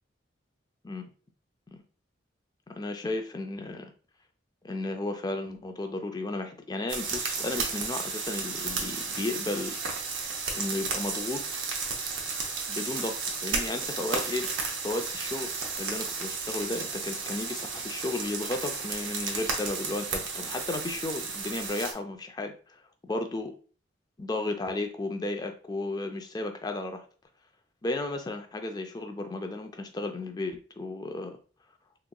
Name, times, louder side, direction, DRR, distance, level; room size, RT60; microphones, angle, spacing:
voice 1, 2.7-3.9 4.6-9.8 10.5-11.4 12.6-14.5 14.8-15.5 15.8-23.5 24.2-27.0 27.8-31.4, left 2 dB, 20° left, 6 dB, 0.4 m, -34 dB
sound 1, 6.9-21.9, right 4 dB, 85° right, 0.7 m, -33 dB
3.5 x 2.9 x 2.2 m, 0.38 s
head